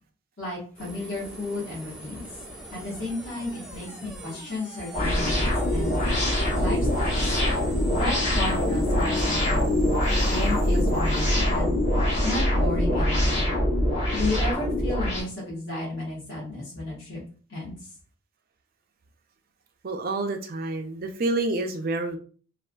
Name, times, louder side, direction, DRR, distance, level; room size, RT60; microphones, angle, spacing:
voice 1, 0.4-2.3 2.7-6.0 6.5-7.2 7.9-9.7 10.3-11.6 12.2-13.5 14.1-17.2 17.5-17.7, left 2 dB, 55° left, -8 dB, 1.2 m, -33 dB
sound 1, 0.8-12.7, right 1 dB, 5° right, 0.8 m, -43 dB
sound 2, 4.9-15.2, left 1 dB, 35° left, 1.0 m, -23 dB
voice 2, 19.8-22.2, right 2 dB, 45° right, 5 dB, 0.4 m, -28 dB
3.3 x 2.4 x 2.2 m, 0.40 s
head